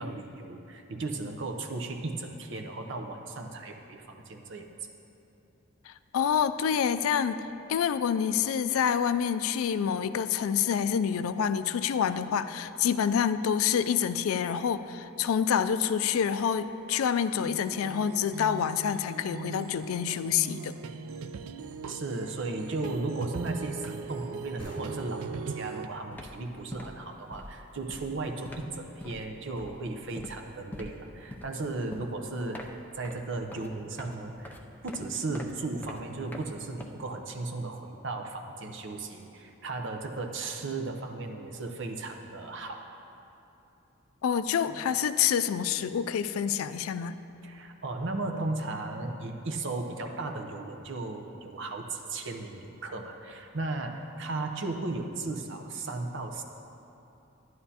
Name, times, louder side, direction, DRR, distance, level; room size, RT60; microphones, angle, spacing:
voice 1, 0.0-4.7 21.9-34.6 34.8-42.8 47.4-56.4, right 2 dB, 60° right, 4 dB, 0.7 m, -36 dB
voice 2, 5.9-7.4 7.7-20.7 44.2-47.2, left 8 dB, 90° left, 12 dB, 0.3 m, -27 dB
sound 1, 17.4-25.9, right 5 dB, 90° right, 0.4 m, -40 dB
sound 2, 24.6-28.0, equal, 25° left, 1.8 m, -49 dB
sound 3, 25.6-25.7 26.0-37.4, left 1 dB, 10° left, 0.4 m, -45 dB
11.0 x 11.0 x 2.8 m, 2.9 s
head